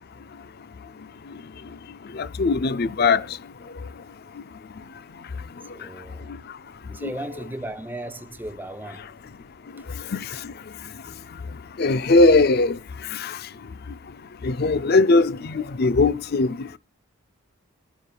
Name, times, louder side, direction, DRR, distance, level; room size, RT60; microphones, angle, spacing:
voice 1, 2.0-3.4 4.3-4.4 5.6-5.9 6.3-6.4 7.0-7.1 9.7-10.5 11.8-13.5 14.4-16.8, left 3 dB, 50° left, 0.5 m, -21 dB
voice 2, 5.7-6.3 6.9-9.1 9.8-9.9 11.0-11.1, right 1 dB, 10° right, 0.6 m, -36 dB
21.5 x 9.4 x 2.3 m
head